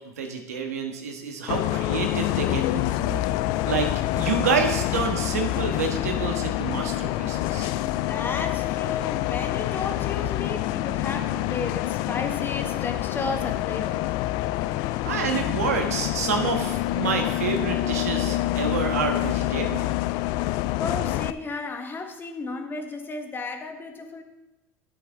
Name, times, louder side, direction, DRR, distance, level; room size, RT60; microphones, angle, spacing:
voice 1, 0.2-3.2 3.6-7.7 15.0-19.9, right 5 dB, 80° right, 4 dB, 1.4 m, -28 dB
Bus, 1.5-21.3, left 15 dB, 60° left, 0.4 m, -27 dB
voice 2, 8.1-14.0 20.8-24.2, left 3 dB, 25° left, 5 dB, 1.6 m, -33 dB
11.5 x 8.3 x 3.8 m, 1.0 s
hypercardioid pair, 75°, 8 cm